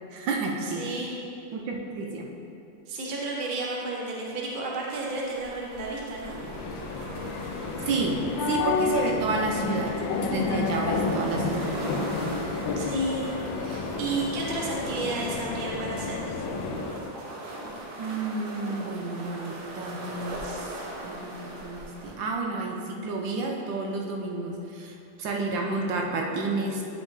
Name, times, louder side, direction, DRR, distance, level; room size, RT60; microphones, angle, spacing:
voice 1, 0.1-0.8 1.5-2.3 7.8-8.2 8.5-9.9 10.3-11.7 18.0-26.8, right 3 dB, 75° right, 0 dB, 1.5 m, -30 dB
voice 2, 0.6-1.1 2.9-6.3 12.8-13.3 13.6-16.2, right 2 dB, 35° right, -3 dB, 0.8 m, -32 dB
sound 1, 4.9-22.1, right 1 dB, 60° right, 1.4 m, -40 dB
sound 2, 6.3-17.1, left 4 dB, 85° left, 1.4 m, -30 dB
9.2 x 5.4 x 3.2 m, 2.6 s
omnidirectional pair, 2.1 m